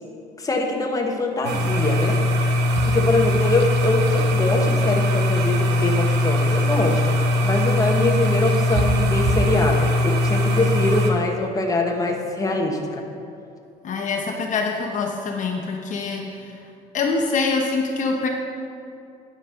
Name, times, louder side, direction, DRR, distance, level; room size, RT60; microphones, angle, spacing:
voice 1, 0.4-2.2 2.8-7.2 7.4-13.0, left 2 dB, 20° left, 1 dB, 1.2 m, -23 dB
sound 1, 1.4-11.1, left 1 dB, 85° right, 1.0 m, -20 dB
voice 2, 13.8-16.6 16.9-18.3, left 4 dB, 50° left, 1 dB, 0.9 m, -25 dB
9.7 x 6.1 x 5.6 m, 2.5 s
cardioid pair, 110°, 17 cm